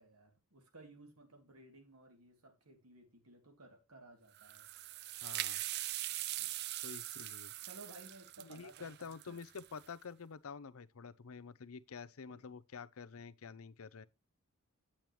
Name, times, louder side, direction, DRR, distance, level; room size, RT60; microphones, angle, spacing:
voice 1, 0.0-4.7 6.4-6.5 7.6-9.4 12.3-12.4, right 2 dB, 90° right, 2.8 m, -57 dB
sound 1, 4.3-9.9, right 15 dB, 50° right, 0.4 m, -42 dB
voice 2, 5.2-5.6 6.8-7.5 8.4-14.1, left 5 dB, 75° left, 0.6 m, -49 dB
9.1 x 8.7 x 3.1 m
head